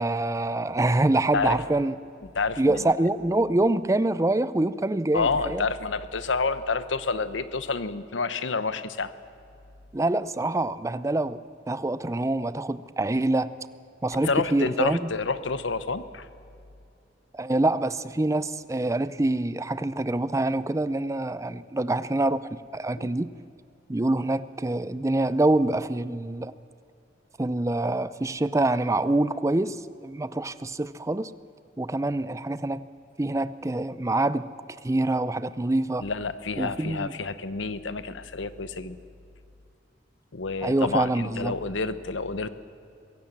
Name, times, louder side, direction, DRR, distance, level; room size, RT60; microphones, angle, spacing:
voice 1, 0.0-1.9 2.6-5.6 9.9-11.4 11.7-13.5 14.0-15.1 17.3-23.3 23.9-26.5 27.4-31.3 31.8-32.9 33.2-34.5 34.8-36.1 36.6-37.1 40.6-41.5, right 2 dB, 15° right, 16 dB, 0.5 m, -25 dB
voice 2, 2.3-2.9 5.1-9.1 14.2-16.3 23.0-23.1 36.0-39.0 40.3-42.5, left 4 dB, 85° left, 13 dB, 0.9 m, -29 dB
23.0 x 17.0 x 7.3 m, 2.5 s
head